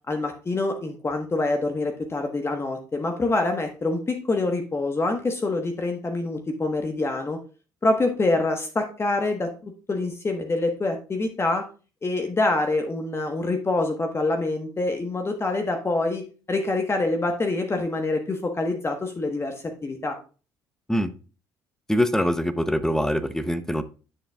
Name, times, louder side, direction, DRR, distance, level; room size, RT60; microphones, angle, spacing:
voice 1, 0.1-7.4 7.8-11.6 12.0-20.2, left 2 dB, 25° left, 4 dB, 1.3 m, -26 dB
voice 2, 21.9-23.8, equal, 5° left, 12 dB, 0.8 m, -23 dB
9.9 x 6.5 x 2.4 m, 0.35 s
hypercardioid pair, 55°, 9 cm